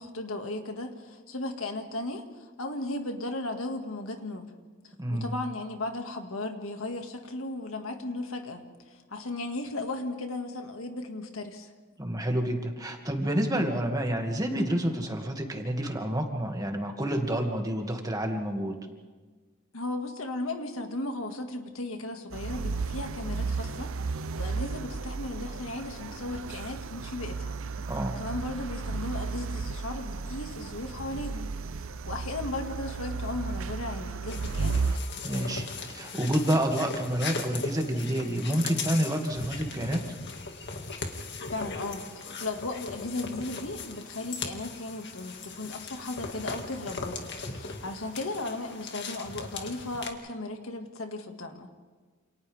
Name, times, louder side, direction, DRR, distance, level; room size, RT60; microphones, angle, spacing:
voice 1, 0.0-4.5 5.1-11.7 19.7-27.6 28.2-34.9 41.5-51.8, left 2 dB, 80° left, 4 dB, 2.1 m, -36 dB
voice 2, 5.0-5.3 12.0-18.8 27.9-28.2 35.2-35.7 35.9-40.0, right 1 dB, 20° right, 2 dB, 2.3 m, -28 dB
sound 1, 22.3-35.0, right 4 dB, 70° right, 0.7 m, -34 dB
sound 2, 34.3-50.1, left 4 dB, 55° left, 2.2 m, -38 dB
28.5 x 28.5 x 3.6 m, 1.4 s
head